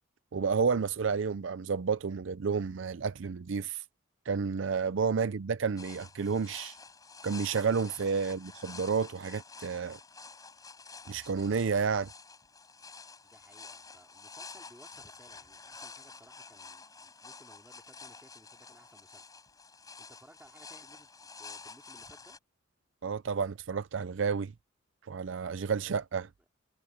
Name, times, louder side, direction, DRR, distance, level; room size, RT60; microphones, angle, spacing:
voice 1, 0.3-3.8 4.3-6.8 7.2-10.0 11.1-12.1 23.0-24.5 25.1-26.3, right 5 dB, 65° right, 0.5 m, -30 dB
sound 1, 5.8-22.4, left 4 dB, 20° left, 4.8 m, -50 dB
voice 2, 13.2-19.3 20.0-22.4, right 1 dB, 10° right, 3.1 m, -59 dB
head